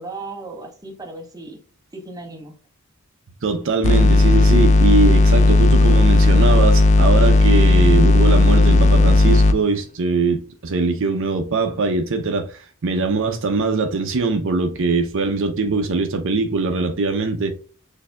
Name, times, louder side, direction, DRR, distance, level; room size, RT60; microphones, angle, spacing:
voice 1, 0.0-1.6 1.9-2.5, right 2 dB, 15° right, 0.9 m, -35 dB
voice 2, 3.4-17.5, right 3 dB, 60° right, 0.6 m, -21 dB
sound 1, 3.8-9.6, left 2 dB, 35° left, 0.3 m, -13 dB
6.4 x 2.7 x 2.2 m
head